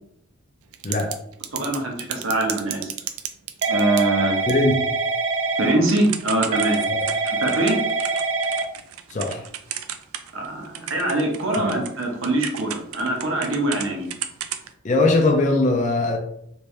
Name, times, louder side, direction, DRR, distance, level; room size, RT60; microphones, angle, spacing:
Typing / Telephone, 0.7-1.1 1.4-10.5 10.7-13.9 14.1-14.7, right 4 dB, 80° right, 0.4 m, -25 dB
voice 1, 1.5-2.9 3.7-4.4 5.6-6.8 7.2-7.8 10.3-14.1, right 1 dB, 65° right, 0 dB, 0.9 m, -23 dB
voice 2, 4.5-4.8 6.9-7.0 9.1-9.4 11.6-11.7 14.8-16.2, left 2 dB, 35° left, 2 dB, 0.4 m, -20 dB
3.2 x 2.6 x 3.2 m, 0.72 s
head